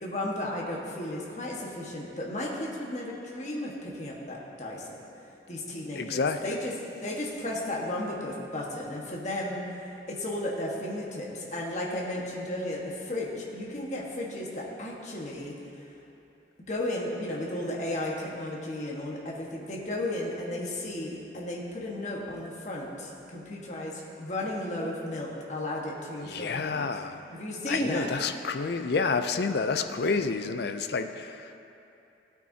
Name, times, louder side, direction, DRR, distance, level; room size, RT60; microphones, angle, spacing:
voice 1, 0.0-5.0 5.5-6.7 7.0-9.8 10.1-15.6 16.7-26.9 27.3-28.1, left 1 dB, 40° left, -3 dB, 1.4 m, -34 dB
voice 2, 6.0-6.7 26.2-27.2 27.7-31.6, left 4 dB, 60° left, 8 dB, 0.4 m, -29 dB
16.0 x 8.9 x 2.8 m, 2.8 s
head